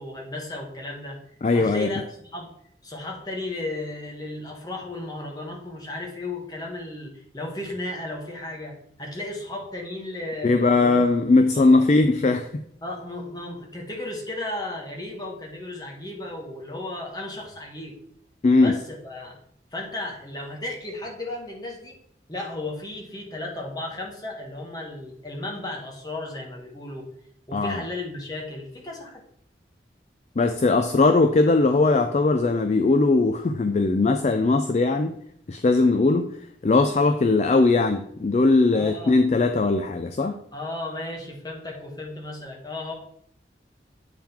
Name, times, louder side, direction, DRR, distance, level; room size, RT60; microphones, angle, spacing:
voice 1, 0.0-2.1 2.3-2.5 2.8-11.0 11.5-11.9 12.8-18.0 18.6-19.4 19.7-21.9 22.3-27.1 27.5-29.2 38.7-39.2 40.5-42.9, left 2 dB, 20° left, 0 dB, 1.4 m, -34 dB
voice 2, 1.4-1.9 10.4-12.6 18.4-18.8 27.5-27.8 30.4-35.2 35.5-36.3 36.6-40.4, left 3 dB, 40° left, 8 dB, 0.4 m, -20 dB
8.7 x 3.7 x 4.3 m, 0.71 s
head